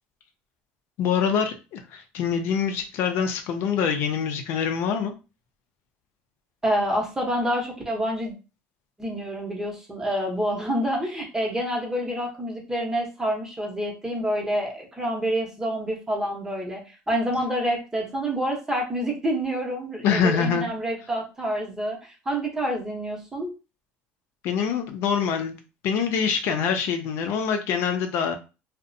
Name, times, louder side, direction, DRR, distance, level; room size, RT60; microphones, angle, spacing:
voice 1, 1.0-5.1 20.0-20.7 24.4-25.6 25.8-28.4, left 7 dB, 65° left, 6 dB, 0.4 m, -25 dB
voice 2, 6.6-8.3 9.0-22.0 22.3-23.5, equal, 15° right, 0 dB, 0.8 m, -27 dB
2.5 x 2.1 x 2.6 m, 0.31 s
cardioid pair, 120°, 4 cm